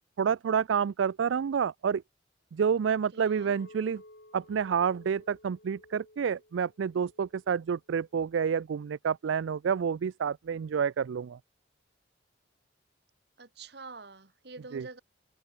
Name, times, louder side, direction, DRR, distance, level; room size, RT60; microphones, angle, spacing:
voice 1, 0.2-2.0 2.5-4.0 4.3-11.4 14.7-14.9, right 7 dB, 80° right, 0.4 m, -29 dB
voice 2, 2.9-3.6 13.4-15.0, right 3 dB, 55° right, 1.6 m, -47 dB
Chink clink, 3.3-7.6 7.9-8.4, left 1 dB, 65° left, 5.2 m, -55 dB
open air
head